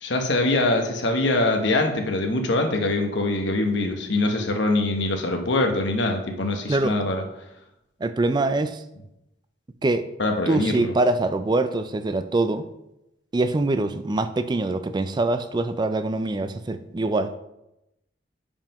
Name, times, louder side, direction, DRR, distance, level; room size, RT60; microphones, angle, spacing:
voice 1, 0.0-7.2 10.2-10.9, left 2 dB, 75° left, 4 dB, 1.0 m, -23 dB
voice 2, 8.0-8.8 9.8-10.1 10.5-12.7 13.3-17.3, right 2 dB, 25° right, 11 dB, 0.4 m, -24 dB
5.5 x 5.0 x 5.3 m, 0.87 s
head